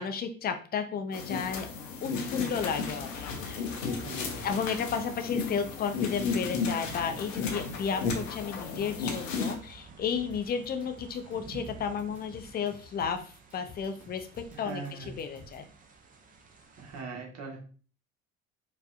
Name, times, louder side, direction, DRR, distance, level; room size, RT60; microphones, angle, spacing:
voice 1, 0.0-1.7 2.0-3.6 4.4-13.2 13.5-15.7, left 6 dB, 25° left, 7 dB, 0.5 m, -33 dB
sound 1, 1.1-9.5, left 4 dB, 75° left, 0.7 m, -34 dB
sound 2, 3.0-17.0, right 4 dB, 20° right, 0.7 m, -52 dB
voice 2, 4.0-4.6 14.5-15.2 16.8-17.6, right 4 dB, 40° right, 0 dB, 1.3 m, -41 dB
sound 3, 10.3-15.7, left 3 dB, 5° right, 1.4 m, -52 dB
4.7 x 2.5 x 2.5 m, 0.40 s
figure-of-eight pair, 60°, 40 cm